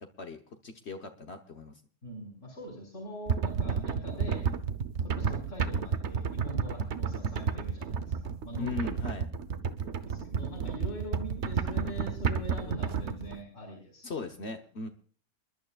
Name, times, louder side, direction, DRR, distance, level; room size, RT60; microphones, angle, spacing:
voice 1, 0.0-1.8 8.6-9.3 14.0-14.9, left 4 dB, 60° left, 5 dB, 1.3 m, -38 dB
voice 2, 2.0-4.5 5.0-8.9 9.8-14.1, equal, 75° left, -3 dB, 5.3 m, -43 dB
sound 1, 3.3-13.4, right 6 dB, 65° right, 1.2 m, -31 dB
28.5 x 11.5 x 2.4 m, 0.43 s
omnidirectional pair, 1.3 m